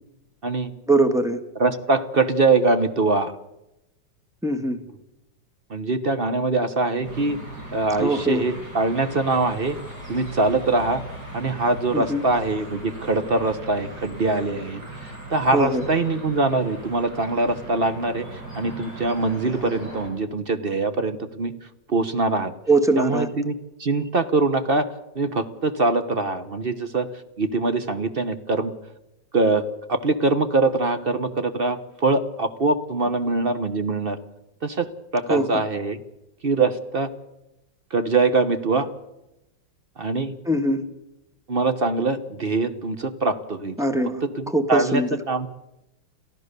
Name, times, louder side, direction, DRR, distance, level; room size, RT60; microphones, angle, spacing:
voice 1, 0.9-1.4 4.4-4.8 8.0-8.4 11.9-12.2 15.5-15.8 22.7-23.3 35.3-35.6 40.5-40.8 43.8-44.2 44.5-45.1, right 2 dB, ahead, 8 dB, 1.1 m, -21 dB
voice 2, 1.6-3.3 5.7-7.4 7.7-9.8 10.1-11.0 11.3-21.5 21.9-22.5 23.0-23.5 23.8-24.9 25.1-27.1 27.4-28.7 29.3-29.6 29.9-34.2 34.6-34.9 35.1-36.0 36.4-37.1 37.9-38.9 40.0-40.3 41.5-43.7 44.4-45.5, right 3 dB, 40° right, 10 dB, 0.9 m, -23 dB
sound 1, 7.0-20.1, right 2 dB, 55° right, 6.0 m, -38 dB
30.0 x 13.5 x 6.7 m, 0.91 s
omnidirectional pair, 2.0 m